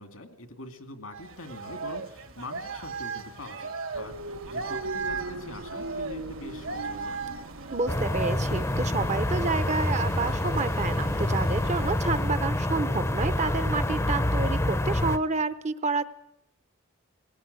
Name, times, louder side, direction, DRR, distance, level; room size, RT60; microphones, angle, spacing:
voice 1, 0.0-7.2, left 2 dB, 80° left, 6 dB, 2.4 m, -44 dB
sound 1, 1.1-12.3, right 4 dB, 70° right, 1.9 m, -38 dB
sound 2, 3.9-8.8, right 1 dB, 85° right, 1.0 m, -39 dB
voice 2, 7.7-16.0, right 4 dB, 35° right, 12 dB, 0.7 m, -29 dB
sound 3, 7.9-15.2, left 1 dB, 15° left, 0.7 m, -27 dB
20.0 x 17.0 x 8.1 m, 0.86 s
head